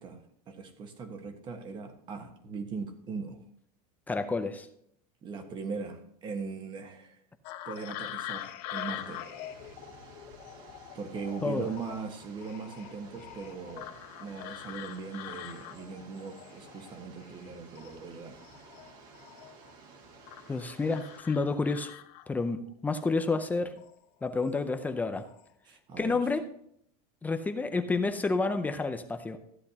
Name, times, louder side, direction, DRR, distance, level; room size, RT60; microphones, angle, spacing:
voice 1, 0.0-3.4 5.2-7.2 7.7-9.2 10.9-13.9 14.2-18.4 25.7-26.2, right 5 dB, 25° right, 6 dB, 1.4 m, -40 dB
voice 2, 4.1-4.7 11.4-11.7 20.5-21.9 22.3-23.7 24.2-25.2 26.0-26.4 27.2-29.4, left 3 dB, 10° left, 8 dB, 0.5 m, -29 dB
sound 1, 7.4-17.5 17.7-19.7 20.3-22.5 23.7-23.9 24.4-24.9 25.1-25.4, left 12 dB, 45° left, 0.9 m, -44 dB
sound 2, 8.9-21.2, right 4 dB, 45° right, 1.9 m, -53 dB
14.5 x 9.9 x 2.9 m, 0.69 s
supercardioid pair, 165°, 20 cm